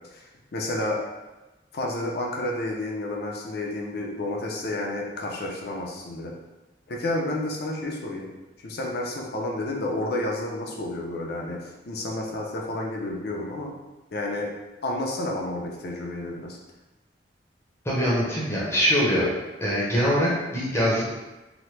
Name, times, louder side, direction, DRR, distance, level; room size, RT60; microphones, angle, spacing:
voice 1, 0.1-1.0 1.7-6.3 6.9-8.3 8.6-13.7 14.1-14.5 14.8-16.6, left 1 dB, 60° left, -1 dB, 0.5 m, -30 dB
voice 2, 17.8-19.3 19.6-21.0, equal, 15° left, -7 dB, 0.7 m, -23 dB
2.9 x 2.1 x 3.2 m, 1.1 s
head